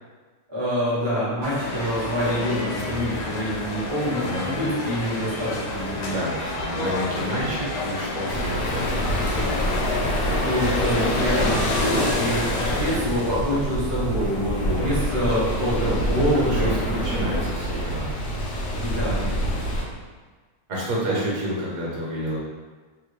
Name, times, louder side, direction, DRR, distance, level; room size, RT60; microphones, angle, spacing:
voice 1, 0.5-6.1 10.4-17.3 18.8-19.3 21.0-21.2, equal, 40° right, -9 dB, 0.3 m, -26 dB
sound 1, 1.4-13.0, left 2 dB, 85° left, 1.4 m, -30 dB
voice 2, 4.2-4.5 6.1-9.6 14.6-15.1 15.8-15.9 16.3-18.1 20.7-22.4, equal, 60° right, -5 dB, 1.2 m, -30 dB
sound 2, 8.3-19.8, equal, 65° left, 1.0 m, -26 dB
3.4 x 2.3 x 3.1 m, 1.4 s
omnidirectional pair, 2.1 m